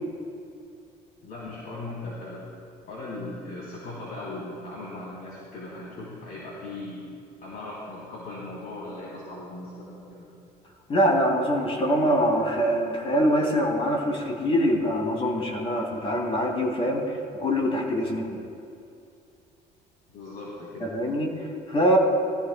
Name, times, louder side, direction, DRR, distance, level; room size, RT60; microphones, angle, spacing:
voice 1, 1.2-2.5 2.9-7.1 7.4-10.3 20.1-20.9, left 2 dB, 60° left, -7 dB, 3.1 m, -38 dB
voice 2, 10.9-18.4 20.8-22.0, equal, 35° left, 0 dB, 2.9 m, -24 dB
20.5 x 14.5 x 2.2 m, 2.6 s
cardioid pair, 110°, 17 cm